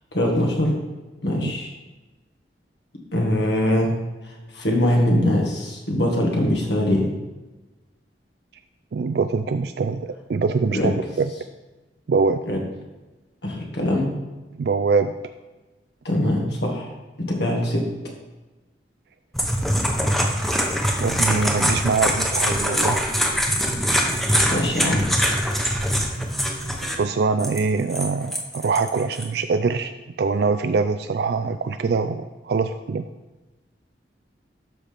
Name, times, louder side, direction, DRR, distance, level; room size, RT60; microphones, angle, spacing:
voice 1, 0.1-0.7 1.2-1.7 3.1-4.0 4.2-7.1 10.7-10.9 12.5-12.6 13.4-14.1 16.0-16.9 17.3-17.8 24.5-25.0, left 1 dB, 75° left, 0 dB, 1.9 m, -22 dB
voice 2, 8.9-11.3 12.1-12.4 14.5-15.1 21.0-23.0 25.6-25.8 26.8-33.1, right 4 dB, 65° right, 9 dB, 0.4 m, -23 dB
sound 1, 19.3-27.0 27.4-29.2, equal, ahead, 0.9 m, -23 dB
12.0 x 5.8 x 3.5 m, 1.1 s
head